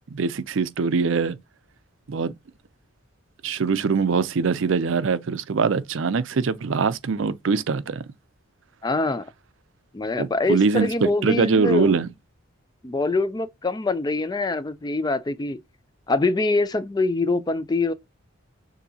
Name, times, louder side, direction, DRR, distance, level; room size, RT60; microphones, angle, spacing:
voice 1, 0.1-1.4 2.1-2.3 3.4-8.0 10.2-12.1, right 5 dB, 65° right, 0.5 m, -23 dB
voice 2, 8.8-9.3 9.9-11.9 12.8-15.6 16.1-17.9, left 2 dB, 20° left, 0.3 m, -24 dB
6.7 x 2.7 x 2.7 m
head